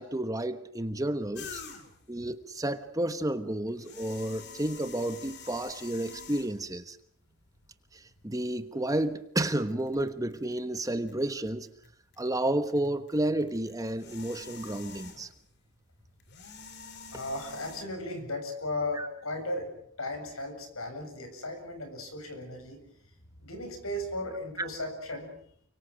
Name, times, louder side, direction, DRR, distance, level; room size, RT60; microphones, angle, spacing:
voice 1, 0.0-1.6 2.1-7.0 8.2-11.7 12.2-15.3 19.0-19.1, right 1 dB, 15° right, 1.1 m, -31 dB
sound 1, 1.3-2.1 3.7-6.7 7.6-7.7 8.9-9.1 9.5-11.9 12.1-15.5 16.2-17.8, left 5 dB, 50° left, 3.3 m, -47 dB
voice 2, 17.1-19.7 20.0-22.8 23.4-25.3, left 1 dB, 80° left, 7.2 m, -36 dB
29.5 x 24.5 x 6.4 m
head